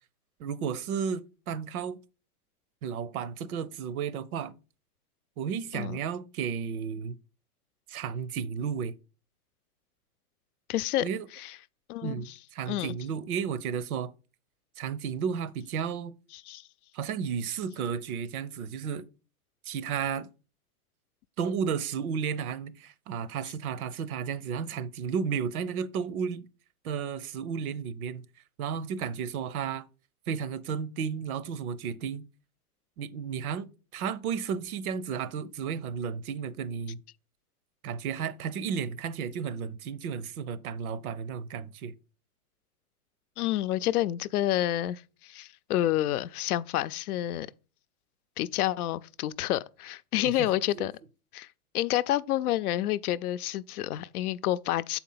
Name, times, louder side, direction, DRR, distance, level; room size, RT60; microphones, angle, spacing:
voice 1, 0.4-2.0 2.8-4.5 5.4-7.2 7.9-8.9 11.0-11.3 12.0-14.1 14.8-16.1 16.9-19.1 19.6-20.3 21.4-26.5 26.8-28.2 28.6-29.8 30.3-32.2 33.0-33.7 33.9-37.0 37.8-41.9 50.7-50.9, right 7 dB, 70° right, 0.8 m, -33 dB
voice 2, 10.7-11.0 11.4-11.5 11.9-12.1 12.7-12.9 16.5-16.6 43.4-47.5 48.4-50.9 51.3-51.5 51.7-55.0, left 13 dB, 80° left, 0.6 m, -29 dB
6.8 x 4.4 x 5.6 m
supercardioid pair, 145°, 45 cm